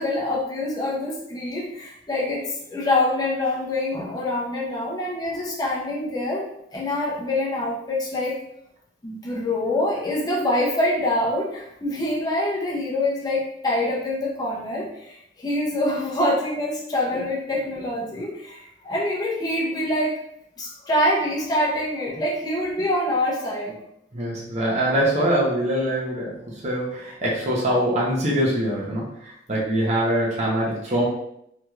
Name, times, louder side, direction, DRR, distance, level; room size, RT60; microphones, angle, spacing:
voice 1, 0.0-8.4 9.0-20.1 20.6-23.7, left 1 dB, 20° left, -5 dB, 0.7 m, -25 dB
voice 2, 24.1-31.0, right 1 dB, 40° right, -5 dB, 0.7 m, -23 dB
3.3 x 2.9 x 2.3 m, 0.76 s
head